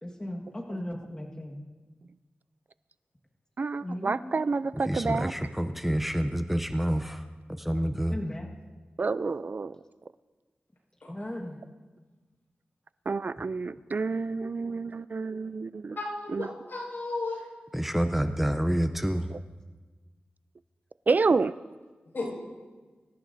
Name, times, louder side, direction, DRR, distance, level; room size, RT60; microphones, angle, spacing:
voice 1, 0.0-1.6 3.8-4.4 7.0-7.2 8.1-8.5 11.1-11.6, left 1 dB, 20° left, -1 dB, 1.6 m, -37 dB
voice 2, 3.6-5.3 9.0-9.8 13.1-16.0 16.3-16.5 19.3-19.4 21.1-21.5, right 4 dB, 50° right, 15 dB, 0.4 m, -29 dB
voice 3, 4.9-7.2 7.5-8.2 17.7-19.3, equal, 5° right, 7 dB, 0.6 m, -28 dB
voice 4, 16.0-17.4 22.1-22.3, left 3 dB, 70° left, -4 dB, 5.5 m, -33 dB
24.5 x 14.0 x 2.7 m, 1.3 s
wide cardioid pair, 90°, 4 cm